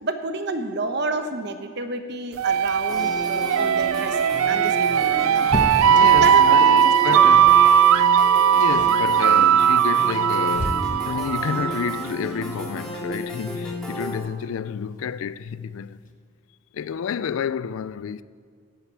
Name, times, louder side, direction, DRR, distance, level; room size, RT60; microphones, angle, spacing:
voice 1, 0.0-5.5 6.1-7.5, right 2 dB, 50° right, 0.9 m, -30 dB
sound 1, 2.4-12.0, right 8 dB, 80° right, 0.3 m, -18 dB
sound 2, 2.9-14.2, equal, ahead, 2.9 m, -34 dB
sound 3, 3.8-6.5 7.3-7.6 7.9-8.2 8.6-9.0 9.8-11.3 13.0-13.1 13.5-13.6 14.8-15.2 15.5-15.6 15.9-16.1, left 1 dB, 35° left, 0.9 m, -32 dB
voice 2, 5.7-6.6 7.0-7.6 8.5-16.0 16.7-18.2, left 7 dB, 70° left, 0.3 m, -30 dB
9.7 x 8.7 x 8.8 m
head